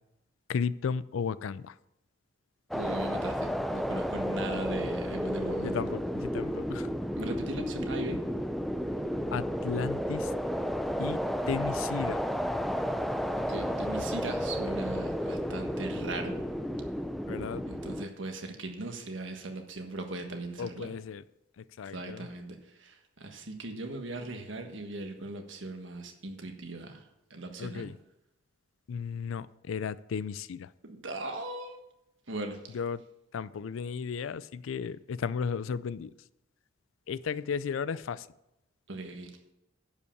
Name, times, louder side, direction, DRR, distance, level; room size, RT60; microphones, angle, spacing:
voice 1, 0.5-1.8 5.6-6.9 9.3-10.3 11.0-11.2 11.5-12.2 17.3-17.6 20.6-21.2 21.6-22.3 27.6-28.0 28.9-30.7 32.7-33.0 33.3-36.1 37.1-38.3, left 6 dB, 85° left, 0.4 m, -34 dB
sound 1, 2.7-18.0, equal, ahead, 0.4 m, -32 dB
voice 2, 2.7-5.8 7.2-8.2 13.4-16.4 17.7-20.9 21.9-27.0 27.3-27.9 30.8-31.8 32.3-32.7 38.9-39.4, right 2 dB, 70° right, 1.5 m, -39 dB
11.0 x 5.6 x 7.0 m
head